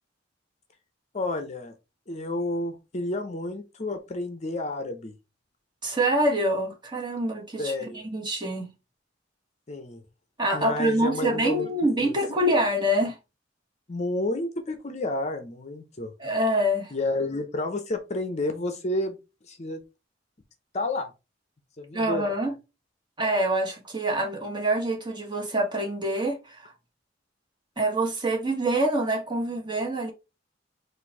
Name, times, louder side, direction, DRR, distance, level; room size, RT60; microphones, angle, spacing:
voice 1, 1.1-1.7 2.1-5.1 7.6-8.1 9.7-10.0 10.5-11.7 12.0-12.1 13.9-16.1 16.9-19.2 19.5-19.8 20.7-21.1 21.8-22.4, left 1 dB, 35° left, 0.7 m, -30 dB
voice 2, 5.8-8.7 10.4-13.2 16.2-16.9 21.9-22.5 23.2-26.7 27.8-30.1, right 1 dB, 25° right, 1.5 m, -26 dB
4.4 x 2.6 x 4.6 m
head